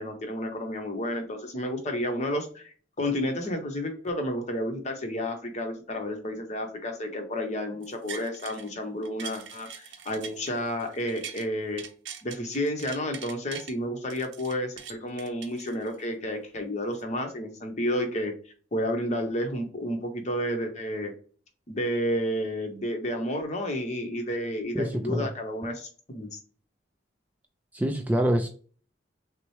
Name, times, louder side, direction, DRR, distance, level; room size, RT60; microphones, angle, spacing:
voice 1, 0.0-11.8 12.2-18.3 18.7-21.1 21.7-26.4, equal, 40° left, 4 dB, 0.9 m, -31 dB
sound 1, 7.8-8.7 9.0-11.5 11.8-13.7 14.1-16.1 16.6-16.7, right 7 dB, 90° right, 0.6 m, -42 dB
voice 2, 24.7-25.3 27.7-28.5, equal, 10° right, 4 dB, 0.3 m, -25 dB
5.9 x 2.1 x 3.1 m, 0.42 s
head